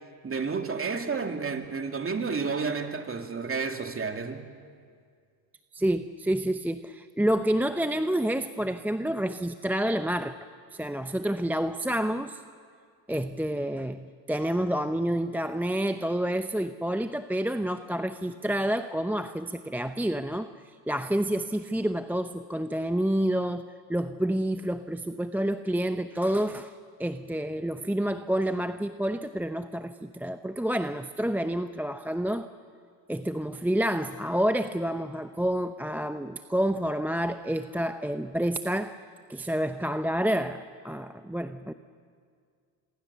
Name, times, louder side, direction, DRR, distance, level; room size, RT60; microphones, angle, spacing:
voice 1, 0.2-4.5, right 5 dB, 30° right, 2.6 m, -31 dB
voice 2, 5.7-10.4 10.7-12.4 13.1-20.5 20.9-26.7 27.0-32.5 33.1-39.0 39.3-41.7, right 1 dB, 5° right, 0.7 m, -28 dB
27.5 x 22.5 x 6.9 m
supercardioid pair, 80°, 45 cm